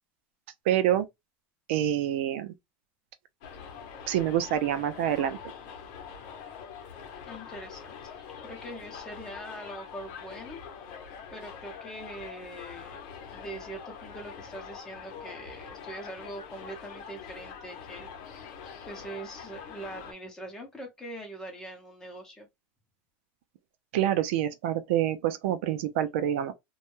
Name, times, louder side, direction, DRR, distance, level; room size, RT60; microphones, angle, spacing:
voice 1, 0.7-1.1 1.7-2.5 4.1-5.4 23.9-26.5, right 11 dB, 90° right, 0.4 m, -26 dB
Subway metro underground, 3.4-20.1, left 7 dB, 65° left, 0.7 m, -44 dB
voice 2, 7.3-8.2 8.4-13.0 13.3-18.5 18.9-22.5, right 1 dB, 10° left, 0.8 m, -43 dB
2.2 x 2.1 x 3.0 m
cardioid pair, 155°, 6 cm